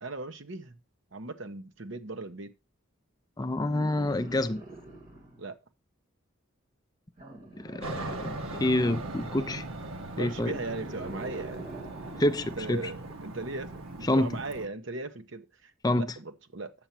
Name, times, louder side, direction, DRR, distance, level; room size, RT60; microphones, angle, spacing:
voice 1, 0.0-0.7 1.1-2.5 5.4-5.5 10.1-11.7 12.6-16.7, right 3 dB, 60° right, 1.0 m, -38 dB
voice 2, 3.4-4.6 7.6-9.6 10.2-10.6 12.2-12.9 14.0-14.3 15.8-16.1, left 1 dB, 20° left, 0.4 m, -27 dB
sound 1, 3.5-5.5 7.2-8.9 10.2-12.5 13.8-13.9, right 2 dB, 40° right, 2.4 m, -46 dB
Aircraft, 7.8-14.7, right 2 dB, 85° right, 1.3 m, -39 dB
8.9 x 7.1 x 4.4 m
head